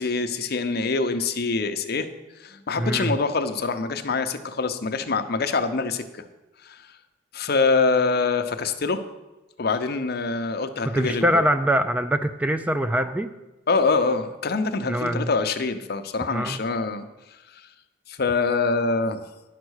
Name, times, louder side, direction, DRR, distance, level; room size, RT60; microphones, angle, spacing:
voice 1, 0.0-2.1 2.4-6.2 6.6-6.9 7.3-9.0 9.6-11.2 13.7-17.1 17.5-17.7 18.1-19.2, left 4 dB, 55° left, 8 dB, 0.7 m, -25 dB
voice 2, 2.8-3.1 10.8-13.3 14.8-15.3 16.3-16.6, right 1 dB, 10° right, 9 dB, 0.3 m, -23 dB
10.5 x 5.9 x 6.4 m, 1.1 s
head